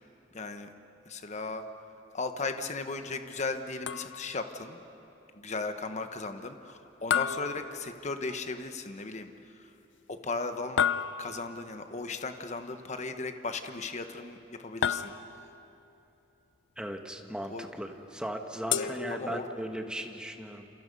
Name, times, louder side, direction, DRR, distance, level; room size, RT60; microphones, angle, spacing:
voice 1, 0.3-0.7 1.1-1.6 2.1-4.8 5.3-9.3 9.6-9.7 10.1-10.8 11.2-15.1 17.5-17.7 18.8-19.4, left 3 dB, 40° left, 7 dB, 1.2 m, -36 dB
sound 1, 3.9-4.5 7.1-8.3 10.8-11.6 14.8-15.6 18.7-19.7, left 8 dB, 85° left, 0.6 m, -32 dB
voice 2, 16.8-20.7, equal, 5° right, 4 dB, 1.5 m, -37 dB
29.5 x 28.0 x 5.5 m, 2.9 s
head